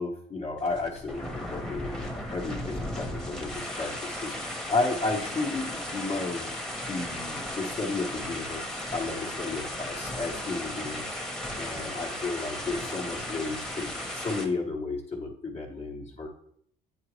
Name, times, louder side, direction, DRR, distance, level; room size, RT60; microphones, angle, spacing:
voice 1, 0.0-16.3, left 3 dB, 35° left, -3 dB, 1.0 m, -33 dB
sound 1, 0.6-14.4, left 1 dB, 5° left, 1.0 m, -35 dB
8.6 x 3.8 x 3.0 m, 0.66 s
cardioid pair, 110°, 17 cm